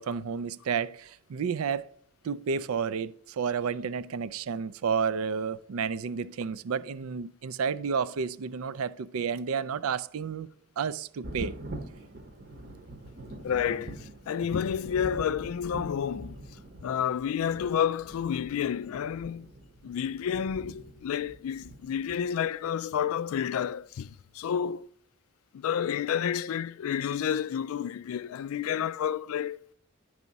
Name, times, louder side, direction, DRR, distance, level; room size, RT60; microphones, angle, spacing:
voice 1, 0.0-1.9 2.2-10.5 10.8-11.6, right 6 dB, 80° right, 0.4 m, -31 dB
Thunder, 11.2-22.7 23.9-24.0 24.6-24.7, right 1 dB, 50° right, 0.8 m, -44 dB
voice 2, 13.4-16.4 16.8-19.5 19.8-24.9 25.5-29.6, left 8 dB, 80° left, 0.3 m, -30 dB
11.0 x 4.8 x 4.1 m
head